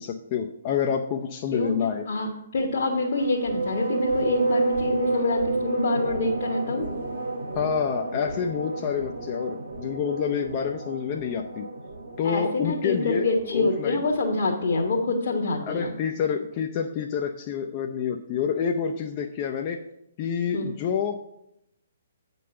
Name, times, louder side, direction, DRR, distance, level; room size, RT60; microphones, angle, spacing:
voice 1, 0.0-2.0 7.6-11.7 12.2-14.0 15.7-19.8 20.2-21.3, left 7 dB, 30° left, 3 dB, 0.5 m, -28 dB
voice 2, 2.1-6.9 12.2-15.9 20.5-20.7, left 3 dB, 50° left, 0 dB, 1.1 m, -26 dB
sound 1, 3.0-14.9, right 3 dB, 60° right, 1.3 m, -31 dB
8.4 x 5.4 x 5.6 m, 0.83 s
figure-of-eight pair, 125°, 0 cm